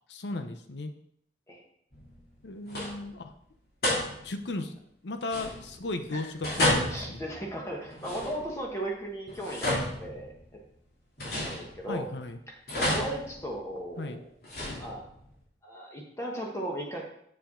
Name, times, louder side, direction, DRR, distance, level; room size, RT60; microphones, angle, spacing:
voice 1, 0.1-0.9 2.4-3.2 4.2-4.8 5.0-7.2 11.9-12.4 14.0-14.2, left 2 dB, 85° left, 8 dB, 0.8 m, -35 dB
sound 1, 1.9-2.4 2.7-3.2 3.8-4.5 5.2-5.9 6.4-8.7 9.3-10.6 11.2-12.1 12.7-13.9 14.4-15.3, left 1 dB, 60° left, 2.9 m, -32 dB
voice 2, 6.9-10.3 11.4-12.1 12.5-14.3 14.8-15.0 15.6-17.0, right 1 dB, 15° left, -1 dB, 1.3 m, -36 dB
7.6 x 6.9 x 3.8 m, 0.70 s
head